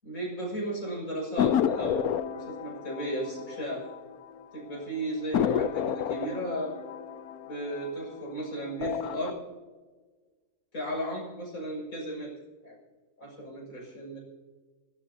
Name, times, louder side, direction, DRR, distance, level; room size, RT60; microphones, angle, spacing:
voice 1, 0.0-3.8 4.5-6.7 7.5-9.4 10.7-12.3 12.6-12.8 13.2-14.2, right 1 dB, 60° left, -2 dB, 7.0 m, -35 dB
sound 1, 1.4-4.4 4.7-4.8 5.3-8.3 8.7-9.3, left 9 dB, 75° left, 1.2 m, -30 dB
28.0 x 16.5 x 2.8 m, 1.4 s
omnidirectional pair, 1.6 m